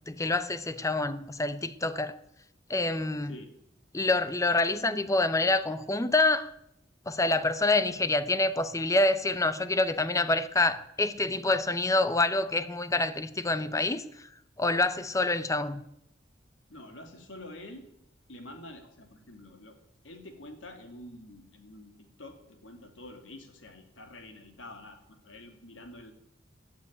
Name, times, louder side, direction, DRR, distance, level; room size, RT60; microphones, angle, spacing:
voice 1, 0.0-2.2 2.7-3.4 3.9-6.5 7.1-14.3 14.6-15.8, left 2 dB, 15° left, 0.6 m, -27 dB
voice 2, 16.7-17.9 18.3-19.8 20.0-26.1, left 1 dB, 85° left, 2.7 m, -47 dB
15.0 x 7.5 x 10.0 m
head